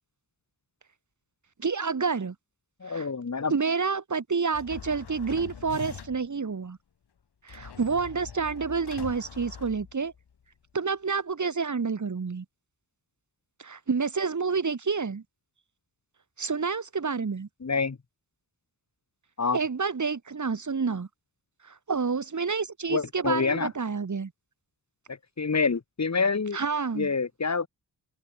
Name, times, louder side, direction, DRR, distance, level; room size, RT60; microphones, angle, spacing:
voice 1, 1.6-2.3 2.9-3.1 3.5-6.8 7.4-10.1 10.7-12.4 13.6-15.2 16.4-17.5 19.5-21.1 21.6-24.3 26.5-27.1, right 5 dB, 45° right, 2.8 m, -29 dB
voice 2, 2.8-3.5 17.6-18.0 19.4-19.6 22.9-23.7 25.4-26.6 26.9-27.7, left 4 dB, 40° left, 2.5 m, -27 dB
sound 1, 4.5-6.4 7.5-10.3, left 7 dB, 75° left, 3.2 m, -43 dB
wide cardioid pair, 100°, 39 cm